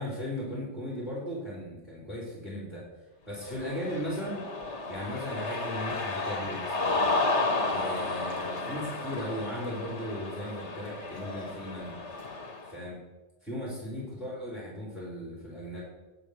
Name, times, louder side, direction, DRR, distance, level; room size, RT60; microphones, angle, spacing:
voice 1, 0.0-2.8 3.3-4.5 4.9-7.0 7.6-11.9 12.7-13.0 13.4-15.8, equal, ahead, -6 dB, 4.2 m, -37 dB
Cheering, 3.4-12.7, left 2 dB, 80° left, 1.8 m, -32 dB
11.0 x 8.6 x 6.7 m, 1.1 s
omnidirectional pair, 1.2 m